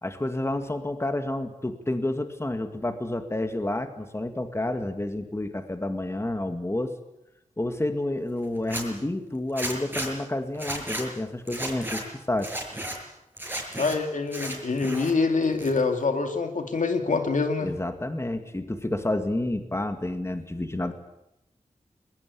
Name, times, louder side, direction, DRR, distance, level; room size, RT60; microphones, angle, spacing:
voice 1, 0.0-6.9 7.6-12.5 17.6-20.9, left 1 dB, 20° left, 7 dB, 2.1 m, -29 dB
Zipper (clothing), 8.6-8.8 9.6-10.1 10.5-11.0 11.5-12.0 12.4-13.0 13.4-13.9 14.3-15.1 15.4-16.0, right 1 dB, 15° right, 6.2 m, -33 dB
voice 2, 13.8-17.7, left 4 dB, 70° left, 5 dB, 2.5 m, -25 dB
21.5 x 20.5 x 8.6 m, 0.90 s
wide cardioid pair, 80°, 13 cm